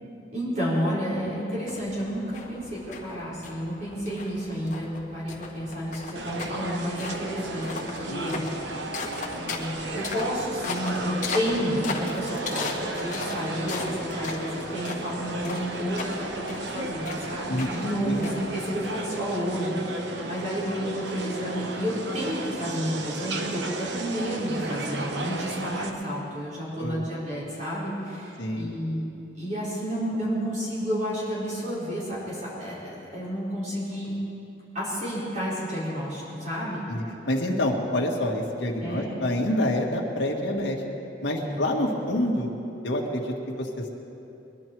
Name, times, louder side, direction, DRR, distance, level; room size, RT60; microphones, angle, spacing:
voice 1, 0.3-8.5 9.3-29.0 29.3-34.1 34.7-36.8 38.8-39.2 41.4-41.9, equal, 45° right, -8 dB, 4.5 m, -31 dB
sound 1, 1.7-19.4, left 3 dB, 45° left, 1.5 m, -38 dB
sound 2, 6.2-25.9, right 2 dB, 70° right, 1.0 m, -34 dB
voice 2, 8.1-8.4 17.5-17.7 18.0-18.2 26.8-27.0 28.4-28.7 36.9-40.8 41.2-42.5 42.8-43.7, left 1 dB, 85° left, 0 dB, 1.8 m, -27 dB
22.0 x 11.5 x 4.6 m, 2.8 s
head